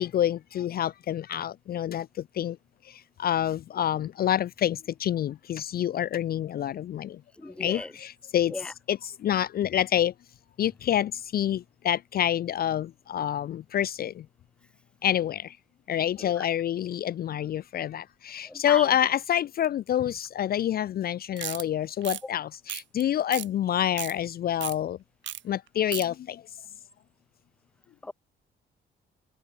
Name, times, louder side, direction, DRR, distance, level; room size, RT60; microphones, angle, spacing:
voice 1, 0.0-2.1 2.3-2.6 2.9-7.2 7.6-8.6 8.9-10.1 10.6-14.3 15.0-15.6 15.9-25.0 25.4-26.4, left 11 dB, 50° left, 0.4 m, -27 dB
voice 2, 7.4-7.9 8.5-8.7 16.2-16.4 18.5-18.9 28.0-28.1, left 2 dB, 5° left, 0.5 m, -37 dB
sound 1, 21.4-21.6 22.0-22.2 22.7-23.0 23.3-23.5 23.8-24.1 24.6-24.8 25.2-25.4 25.7-26.1, right 12 dB, 70° right, 1.0 m, -34 dB
cardioid pair, 90°, 20 cm